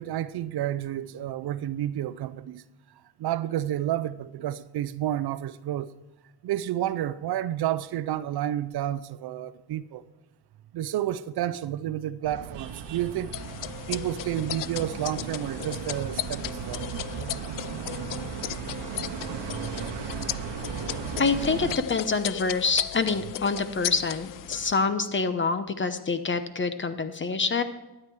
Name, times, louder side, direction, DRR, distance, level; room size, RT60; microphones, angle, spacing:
voice 1, 0.0-2.6 3.2-5.9 6.4-10.0 10.7-13.3 13.9-16.8, right 12 dB, 65° right, 0.6 m, -30 dB
sound 1, 12.2-21.8, right 7 dB, 85° right, 1.1 m, -36 dB
sound 2, 13.3-24.7, left 13 dB, 50° left, 0.5 m, -36 dB
voice 2, 21.2-27.6, left 4 dB, 30° left, 1.0 m, -26 dB
12.5 x 8.9 x 4.8 m
cardioid pair, 90°, 42 cm